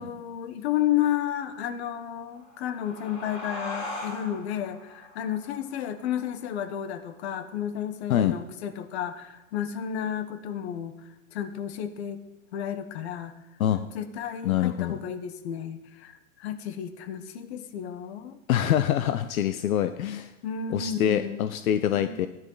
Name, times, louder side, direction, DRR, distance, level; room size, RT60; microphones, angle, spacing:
voice 1, 0.0-10.9 11.3-12.2 12.5-13.3 13.8-18.4 20.4-21.4 21.9-22.2, left 10 dB, 50° left, 11 dB, 1.2 m, -32 dB
sound 1, 2.2-7.4, left 1 dB, 25° left, 2.7 m, -41 dB
voice 2, 14.4-15.0 18.5-20.3 20.7-22.3, left 10 dB, 70° left, 11 dB, 0.7 m, -25 dB
14.0 x 10.5 x 3.9 m, 1.0 s
hypercardioid pair, 150°, 43 cm